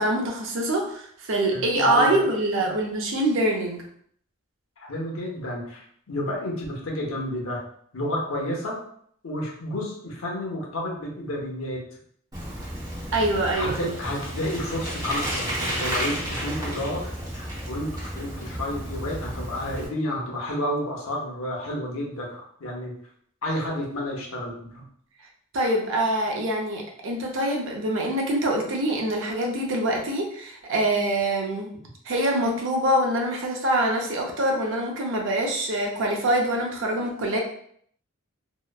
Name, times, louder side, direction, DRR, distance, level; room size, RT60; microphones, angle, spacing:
voice 1, 0.0-3.8 13.1-13.9 25.5-31.7 32.1-37.4, right 1 dB, 65° right, 1 dB, 0.5 m, -24 dB
voice 2, 1.5-2.2 2.6-2.8 4.8-7.6 7.9-8.8 9.2-11.8 13.5-22.9 23.4-24.8, left 1 dB, 70° left, -1 dB, 0.7 m, -31 dB
Bicycle, 12.3-19.9, right 1 dB, 20° right, 0.8 m, -32 dB
2.9 x 2.1 x 2.2 m, 0.63 s
head